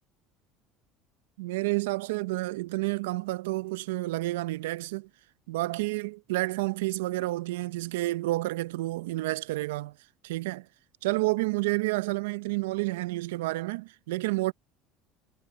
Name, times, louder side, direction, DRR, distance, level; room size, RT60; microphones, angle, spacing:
voice 1, 1.4-5.1 5.5-9.9 10.2-10.7 11.0-14.5, right 20 dB, 85° right, 0.7 m, -30 dB
hypercardioid pair, 80°, 0 cm